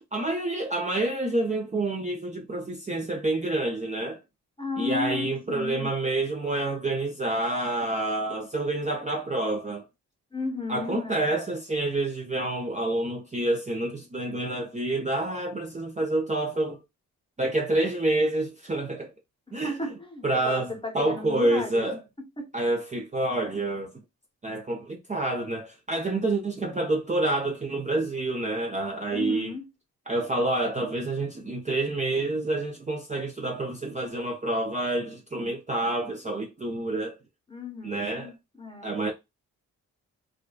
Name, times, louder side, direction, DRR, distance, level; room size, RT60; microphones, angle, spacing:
voice 1, 0.1-4.2 4.8-9.9 10.7-16.8 17.4-19.1 19.5-19.8 20.2-22.0 22.5-23.9 24.4-29.5 30.1-37.2 37.8-38.3 38.8-39.1, right 2 dB, 20° right, 0.6 m, -28 dB
voice 2, 4.6-5.9 10.3-11.3 19.6-21.8 22.4-22.5 29.1-29.6 37.5-38.9, left 3 dB, 15° left, 0.9 m, -34 dB
2.5 x 2.2 x 2.2 m
supercardioid pair, 50°, 37 cm